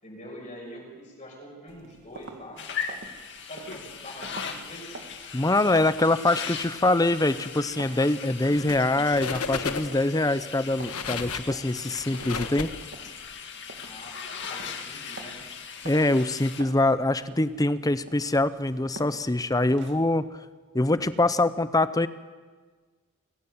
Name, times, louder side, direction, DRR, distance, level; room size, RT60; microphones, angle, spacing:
voice 1, 0.0-2.6 3.4-5.0 13.8-15.4, equal, 35° left, -2 dB, 6.7 m, -44 dB
sound 1, 1.7-20.2, right 3 dB, 55° right, 2.2 m, -48 dB
sound 2, 2.6-16.6, left 6 dB, 55° left, 2.1 m, -39 dB
voice 2, 5.3-12.7 15.8-20.4 20.7-22.1, left 2 dB, 15° left, 14 dB, 0.7 m, -24 dB
sound 3, 8.5-8.9 9.1-10.1 10.6-13.3, left 5 dB, 85° left, 1.3 m, -34 dB
26.5 x 15.5 x 8.0 m, 1.4 s
head